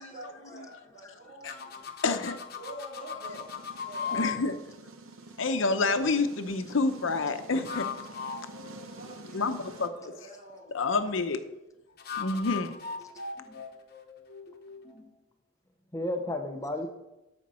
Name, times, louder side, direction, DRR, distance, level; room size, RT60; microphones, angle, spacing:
voice 1, 0.0-1.9 2.5-3.5 3.8-4.5 8.6-11.0 12.3-12.5, right 1 dB, 45° right, -5 dB, 3.3 m, -47 dB
sound 1, 1.5-4.4 7.4-9.6 12.0-14.9, left 6 dB, 50° left, 0.9 m, -38 dB
voice 2, 2.0-2.4 4.1-4.5 5.4-7.9 9.3-9.9 10.7-11.4 12.2-12.7, left 3 dB, 70° left, 9 dB, 0.7 m, -28 dB
sound 2, 3.2-9.9, right 2 dB, 85° right, 0.9 m, -48 dB
voice 3, 15.9-16.9, left 1 dB, 15° left, 5 dB, 0.6 m, -33 dB
13.5 x 5.2 x 4.2 m, 0.99 s
head